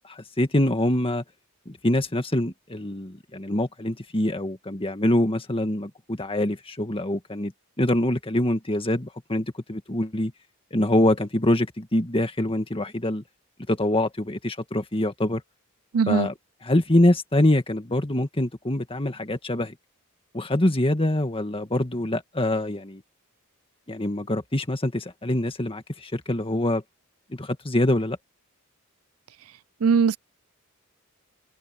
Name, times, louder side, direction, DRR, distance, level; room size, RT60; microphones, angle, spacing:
voice 1, 0.0-1.2 1.7-7.5 7.8-10.3 10.7-13.2 13.7-15.4 16.1-16.3 16.6-19.8 20.3-23.0 23.9-26.8 27.3-28.2, left 1 dB, 25° left, 1.9 m, -24 dB
voice 2, 15.9-16.3 29.8-30.2, right 6 dB, 80° right, 0.5 m, -20 dB
head